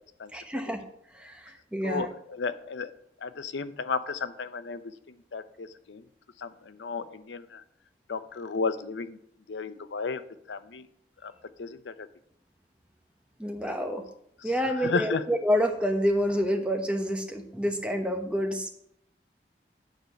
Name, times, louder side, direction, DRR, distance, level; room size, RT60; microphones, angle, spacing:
voice 1, 0.3-0.8 1.1-2.1 13.4-14.0 14.4-18.7, equal, 5° right, 4 dB, 0.9 m, -28 dB
voice 2, 1.8-2.9 3.2-6.0 6.4-7.6 8.1-9.2 9.5-10.2 10.5-10.8 11.2-11.3 11.6-12.1 14.8-15.2, left 4 dB, 90° left, 12 dB, 0.6 m, -33 dB
9.3 x 4.5 x 6.9 m, 0.72 s
head